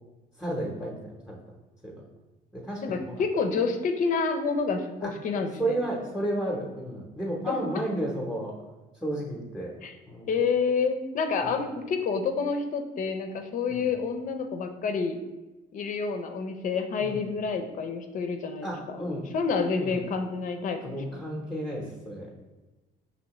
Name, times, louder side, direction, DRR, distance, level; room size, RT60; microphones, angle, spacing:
voice 1, 0.4-1.4 1.8-2.0 2.5-3.1 5.0-5.1 5.6-8.5 9.0-9.7 10.1-10.3 11.4-11.5 13.7-13.9 17.0-17.2 18.6-19.3 19.8-20.0 20.8-22.3, right 1 dB, 5° left, -4 dB, 0.8 m, -32 dB
voice 2, 2.8-5.8 7.4-7.6 9.8-9.9 10.3-15.2 15.7-19.0 19.3-21.2, left 5 dB, 50° left, 6 dB, 0.5 m, -28 dB
5.3 x 3.0 x 3.0 m, 1.1 s
cardioid pair, 110°, 17 cm